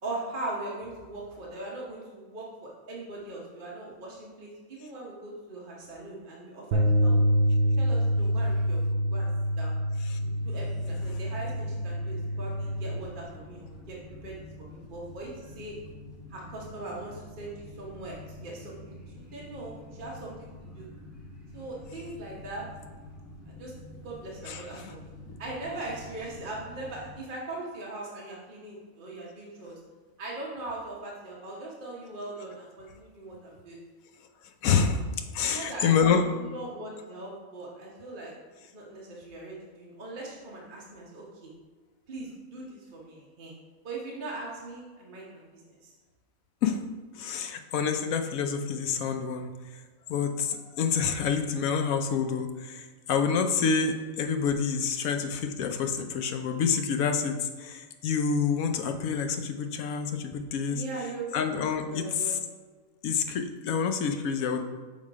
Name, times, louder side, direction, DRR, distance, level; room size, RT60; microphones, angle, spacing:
voice 1, 0.0-7.1 7.6-8.8 9.1-9.3 9.6-9.7 10.2-14.0 14.2-15.7 16.3-20.9 21.5-22.7 23.5-23.7 24.0-25.0 25.4-29.7 30.2-33.8 35.4-38.3 38.7-41.5 42.1-43.5 43.8-45.9 60.7-61.4 61.9-62.3, right 2 dB, 40° right, -4 dB, 1.1 m, -40 dB
sound 1, 6.7-13.0, equal, 90° right, 1.1 m, -26 dB
sound 2, 10.2-27.1, left 1 dB, ahead, 1.4 m, -47 dB
voice 2, 34.6-35.0 35.3-36.3 46.6-46.8 47.1-49.5 50.1-60.8 61.3-62.3 63.0-64.6, left 6 dB, 75° left, 6 dB, 1.0 m, -27 dB
6.3 x 3.7 x 4.8 m, 1.4 s
omnidirectional pair, 1.5 m